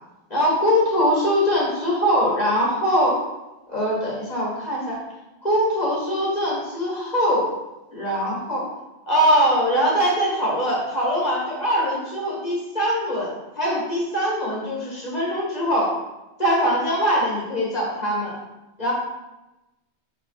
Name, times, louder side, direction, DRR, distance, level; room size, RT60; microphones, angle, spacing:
voice 1, 0.3-3.2 3.7-5.0 5.4-7.5 7.9-8.6 9.1-15.9 16.4-18.4 18.8-18.9, equal, 35° left, -5 dB, 2.1 m, -22 dB
5.1 x 4.5 x 5.0 m, 1.0 s
omnidirectional pair, 1.2 m